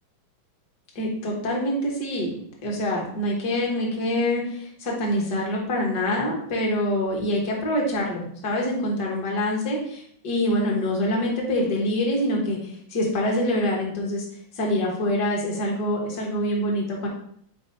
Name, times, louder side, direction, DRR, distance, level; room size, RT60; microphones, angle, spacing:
voice 1, 0.9-2.3 2.6-14.2 14.5-17.1, left 1 dB, 45° left, -2 dB, 1.5 m, -25 dB
8.2 x 4.7 x 2.8 m, 0.65 s
omnidirectional pair, 3.6 m